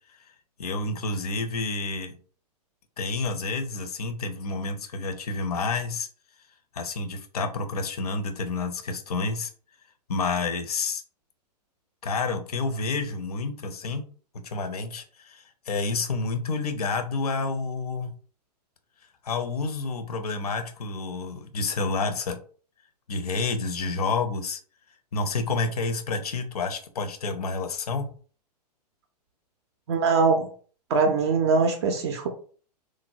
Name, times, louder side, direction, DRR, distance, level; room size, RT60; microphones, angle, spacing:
voice 1, 0.6-2.2 3.0-6.1 6.7-9.5 10.1-11.0 12.0-14.1 14.4-18.1 19.2-22.4 23.1-24.6 25.1-28.1, left 3 dB, 65° left, 7 dB, 0.5 m, -29 dB
voice 2, 29.9-30.5 30.9-32.3, right 4 dB, 40° right, 4 dB, 0.4 m, -22 dB
3.1 x 2.0 x 2.6 m, 0.43 s
figure-of-eight pair, 105°, 21 cm